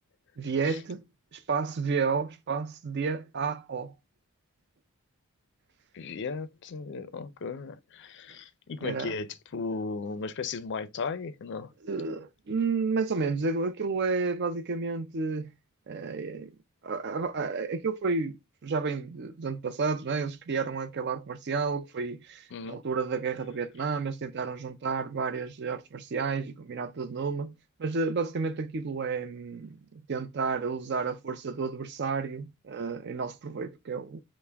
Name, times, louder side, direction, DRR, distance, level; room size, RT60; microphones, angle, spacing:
voice 1, 0.4-1.0 1.3-3.9 8.8-9.1 11.8-15.5 15.9-16.5 16.8-18.4 18.6-27.5 27.8-34.2, right 4 dB, 50° right, 0.5 m, -31 dB
voice 2, 5.9-11.7 22.5-22.8, left 4 dB, 55° left, 0.4 m, -36 dB
5.7 x 2.1 x 3.3 m
head